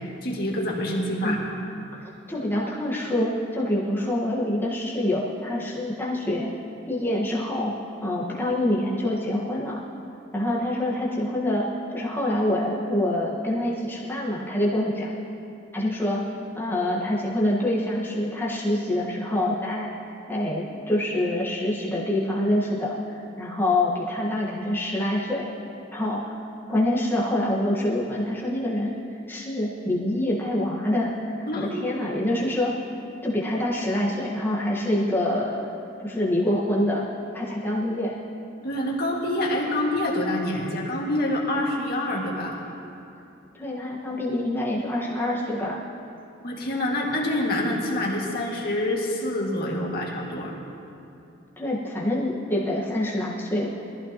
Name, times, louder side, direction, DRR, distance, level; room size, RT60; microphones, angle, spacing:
voice 1, 0.2-1.5 31.5-31.7 38.6-42.6 46.4-50.5, left 1 dB, 50° left, -3 dB, 2.0 m, -26 dB
voice 2, 2.0-6.5 6.9-7.7 8.0-9.8 10.3-15.1 15.7-16.2 16.5-19.9 20.3-25.5 25.9-26.3 26.7-28.9 29.3-31.1 31.4-32.7 33.2-35.7 36.0-38.1 43.6-45.8 51.6-53.7, left 1 dB, 10° left, -5 dB, 1.4 m, -26 dB
22.0 x 14.5 x 3.0 m, 2.7 s
head